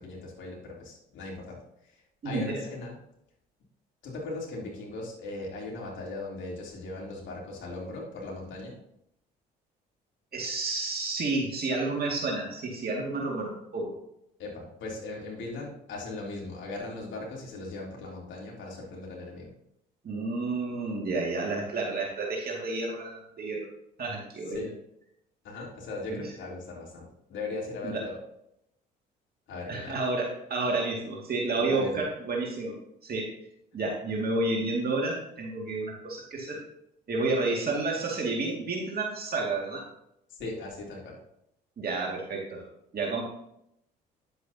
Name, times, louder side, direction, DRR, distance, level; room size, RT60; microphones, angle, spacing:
voice 1, 0.0-1.6 1.9-3.0 4.0-8.8 14.4-19.5 24.5-24.7 25.4-28.2 29.5-30.0 31.6-32.1 40.3-41.2, left 2 dB, 65° left, -3 dB, 3.3 m, -38 dB
voice 2, 2.2-2.6 10.3-13.9 20.0-23.7 24.0-24.6 26.1-26.2 27.8-28.0 29.7-32.8 33.0-33.3 33.7-36.6 37.1-39.8 41.8-42.6 42.9-43.2, right 3 dB, 45° right, -1 dB, 2.2 m, -30 dB
10.0 x 7.8 x 2.8 m, 0.78 s
hypercardioid pair, 60°, 21 cm